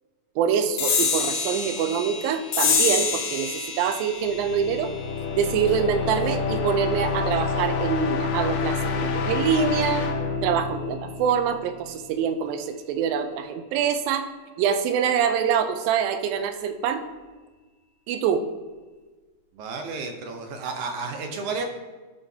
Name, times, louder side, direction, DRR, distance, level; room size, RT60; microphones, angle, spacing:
voice 1, 0.4-4.9 5.4-10.0 10.4-14.3 14.6-17.0 18.1-18.4, right 7 dB, 90° right, 8 dB, 2.5 m, -25 dB
sound 1, 0.8-7.6, left 5 dB, 70° left, 1.8 m, -28 dB
sound 2, 4.2-11.9, left 5 dB, 85° left, 2.6 m, -28 dB
voice 2, 19.5-21.6, right 4 dB, 70° right, 4 dB, 2.0 m, -32 dB
12.5 x 6.7 x 2.8 m, 1.3 s
omnidirectional pair, 4.0 m